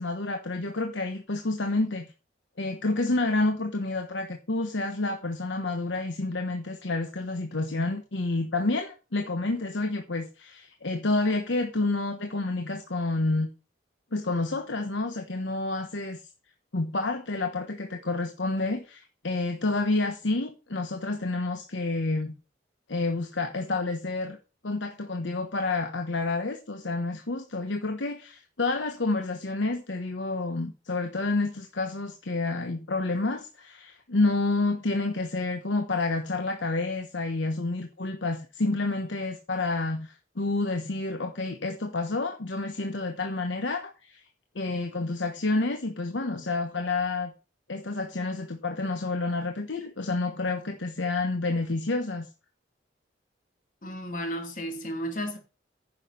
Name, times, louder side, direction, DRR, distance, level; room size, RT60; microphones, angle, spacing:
voice 1, 0.0-2.1 2.6-13.5 14.1-16.2 16.7-22.3 22.9-24.4 24.6-44.2 44.5-47.3 47.7-52.3, left 2 dB, 85° left, 1.2 m, -29 dB
voice 2, 53.8-55.4, equal, 45° left, 2.6 m, -33 dB
9.9 x 6.4 x 5.8 m
head